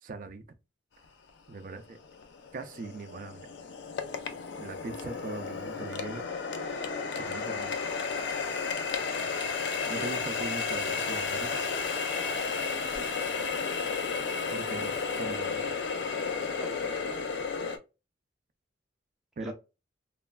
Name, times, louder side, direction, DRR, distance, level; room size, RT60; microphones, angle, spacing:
voice 1, 0.0-0.4 1.5-2.0 2.5-3.5 4.6-6.2 7.2-7.8 9.9-11.5 14.5-15.6 19.4-19.5, right 3 dB, 45° right, 0.3 m, -40 dB
Water tap faucet, 1.3-1.4 2.0-17.8, left 5 dB, 65° left, 0.4 m, -33 dB
voice 2, 9.8-10.1 12.7-13.4 16.5-16.9 19.4-19.5, right 1 dB, ahead, 0.7 m, -46 dB
3.1 x 2.2 x 2.2 m
head